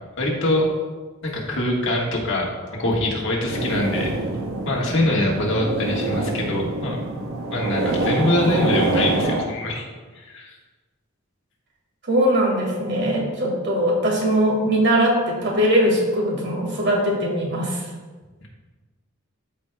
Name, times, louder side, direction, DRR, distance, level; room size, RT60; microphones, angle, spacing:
voice 1, 0.2-0.7 1.2-2.5 2.8-4.1 4.6-7.0 7.5-9.9 10.1-10.5, left 1 dB, 65° left, -2 dB, 1.5 m, -23 dB
sound 1, 3.5-9.4, right 2 dB, 85° right, 0.8 m, -25 dB
voice 2, 12.0-17.8, equal, 60° right, -2 dB, 1.9 m, -21 dB
13.0 x 4.8 x 2.2 m, 1.3 s
head